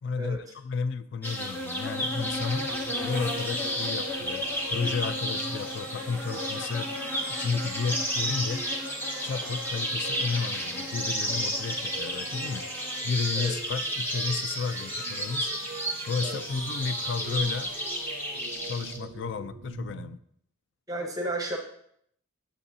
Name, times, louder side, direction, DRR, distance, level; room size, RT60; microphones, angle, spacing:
voice 1, 0.0-2.7 3.0-6.9 7.3-8.7 9.2-12.7 13.0-15.5 16.0-17.7 18.6-20.2, left 5 dB, 55° left, 13 dB, 0.3 m, -32 dB
sound 1, 1.2-19.0, equal, 10° left, 0.7 m, -32 dB
sound 2, 2.0-20.2, right 5 dB, 60° right, 0.5 m, -44 dB
voice 2, 20.9-21.6, right 1 dB, 15° right, 2 dB, 0.9 m, -32 dB
8.5 x 7.1 x 2.7 m, 0.69 s
head